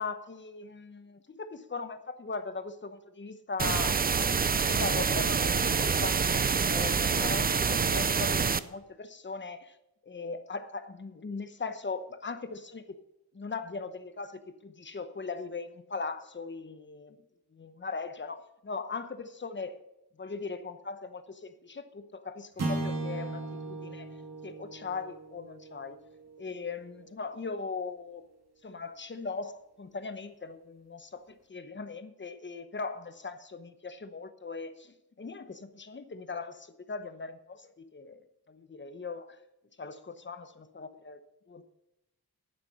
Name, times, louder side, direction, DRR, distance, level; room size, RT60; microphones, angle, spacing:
voice 1, 0.0-4.4 4.6-9.8 10.0-13.0 13.3-17.2 17.5-19.8 20.2-24.1 24.4-26.0 26.4-28.3 28.6-39.4 39.8-41.2 41.5-41.6, left 4 dB, 30° left, 0.9 m, -39 dB
sound 1, 3.6-8.6, right 5 dB, 25° right, 0.4 m, -26 dB
sound 2, 22.6-27.1, right 2 dB, 40° right, 2.1 m, -37 dB
11.5 x 9.1 x 5.5 m
wide cardioid pair, 155°, 38 cm